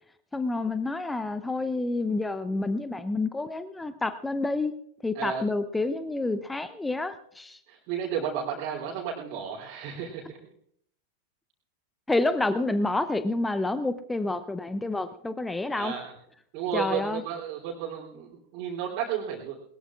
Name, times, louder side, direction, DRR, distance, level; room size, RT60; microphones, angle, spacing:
voice 1, 0.3-4.7 5.0-7.6 12.1-15.9 16.7-17.2, left 2 dB, 10° left, 12 dB, 0.7 m, -28 dB
voice 2, 7.7-10.4 15.7-16.1 16.5-19.6, right 8 dB, 40° right, -5 dB, 3.2 m, -33 dB
20.5 x 20.5 x 2.5 m, 0.69 s
figure-of-eight pair, 90°, 0 cm